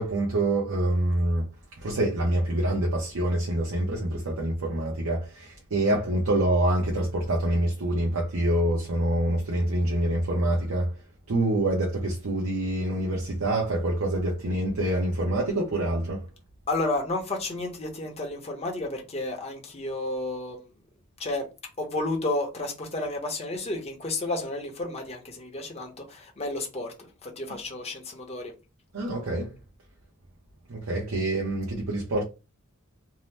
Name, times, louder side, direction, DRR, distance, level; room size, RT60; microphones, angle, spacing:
voice 1, 0.0-1.5 1.8-10.9 11.3-16.2 28.9-29.5 30.7-32.2, right 1 dB, 80° right, 0.7 m, -26 dB
voice 2, 16.7-20.7 21.2-21.5 21.8-28.5, left 2 dB, 30° left, 0.8 m, -31 dB
2.7 x 2.0 x 3.2 m
head